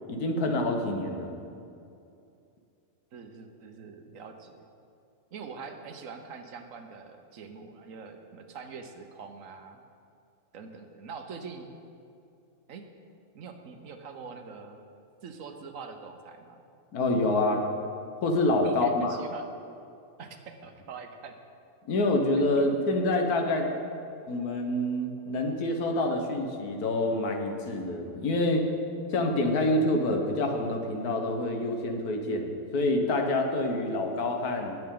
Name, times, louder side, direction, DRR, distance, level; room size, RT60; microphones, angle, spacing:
voice 1, 0.1-1.4 16.9-17.6 18.2-19.2 21.9-23.7 24.3-28.7 29.1-34.8, left 2 dB, 85° left, 3 dB, 1.7 m, -27 dB
voice 2, 3.1-4.7 5.3-9.8 10.5-11.7 12.7-12.9 13.3-14.8 15.2-16.6 18.6-19.5 20.2-21.4 22.4-22.7, right 5 dB, 65° right, 6 dB, 1.2 m, -44 dB
18.5 x 7.7 x 3.8 m, 2.6 s
omnidirectional pair, 1.6 m